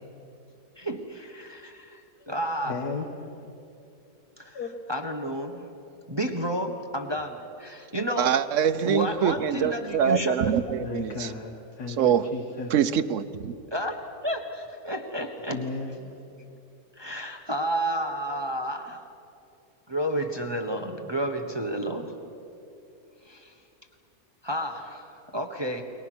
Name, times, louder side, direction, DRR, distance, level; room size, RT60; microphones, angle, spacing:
voice 1, 0.8-2.0 2.3-2.8 4.4-4.6 4.9-5.7 6.1-8.3 8.8-10.5 13.7-14.0 14.2-15.6 17.0-19.0 19.9-22.1 23.2-23.5 24.4-25.8, equal, 20° right, 1.2 m, -31 dB
voice 2, 2.7-3.3 4.5-4.7 10.8-12.7 15.5-16.2, left 4 dB, 80° left, 2.0 m, -35 dB
voice 3, 8.2-11.3 12.0-12.3 12.7-13.5, right 8 dB, 60° right, 1.1 m, -24 dB
29.5 x 22.5 x 6.2 m
omnidirectional pair, 1.6 m